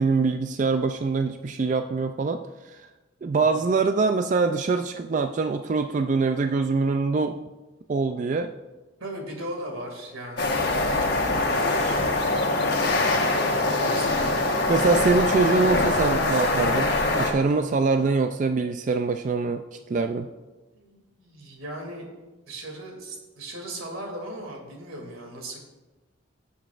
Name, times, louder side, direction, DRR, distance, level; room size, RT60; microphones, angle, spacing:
voice 1, 0.0-2.9 3.2-7.4 7.9-8.5 12.0-12.1 14.7-19.6 19.9-20.3, right 4 dB, 40° right, 7 dB, 0.3 m, -24 dB
voice 2, 3.3-3.6 9.0-12.0 12.8-14.8 20.7-22.1 22.5-25.6, right 1 dB, 90° right, 1 dB, 2.4 m, -38 dB
sound 1, 10.4-17.3, left 2 dB, 50° left, 1.2 m, -23 dB
17.0 x 7.0 x 2.5 m, 1.2 s
head